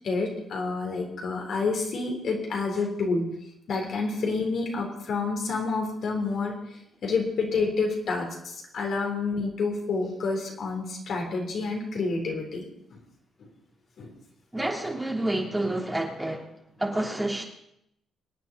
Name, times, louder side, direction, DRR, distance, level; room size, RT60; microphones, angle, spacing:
voice 1, 0.0-3.4 3.7-6.5 7.0-13.0 13.4-13.5 14.0-14.1, left 4 dB, 60° left, 3.8 m, -29 dB
voice 2, 14.5-16.5 16.8-17.4, right 1 dB, 10° right, 3.2 m, -28 dB
26.0 x 9.0 x 4.1 m
cardioid pair, 90°, 0 cm